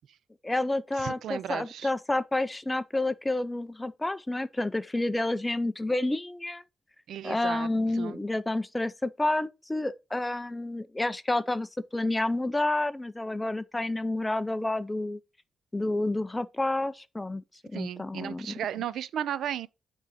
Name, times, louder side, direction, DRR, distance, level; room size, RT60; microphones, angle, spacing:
voice 1, 0.4-6.6 7.2-15.2 15.7-17.4 17.7-18.5, left 2 dB, 10° left, 0.4 m, -29 dB
voice 2, 1.0-1.9 7.1-8.2 17.7-19.7, right 10 dB, 80° right, 0.4 m, -35 dB
8.2 x 3.7 x 4.9 m
wide cardioid pair, 155°, 0 cm